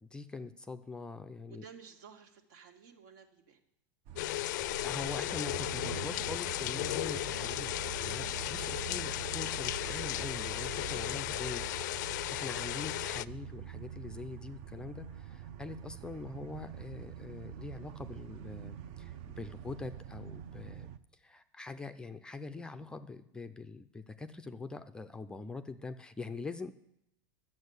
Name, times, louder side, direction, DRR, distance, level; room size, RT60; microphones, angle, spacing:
voice 1, 0.0-1.6 4.8-11.6 12.3-26.7, left 3 dB, 10° left, 9 dB, 0.4 m, -44 dB
voice 2, 1.5-3.6 8.7-9.3 10.9-13.0, right 6 dB, 70° right, 4 dB, 2.1 m, -55 dB
sound 1, 4.1-21.0, right 10 dB, 50° right, 0.7 m, -45 dB
sound 2, 4.2-13.2, left 16 dB, 70° left, 0.4 m, -35 dB
11.5 x 7.4 x 8.0 m, 0.82 s
supercardioid pair, 155°, 10 cm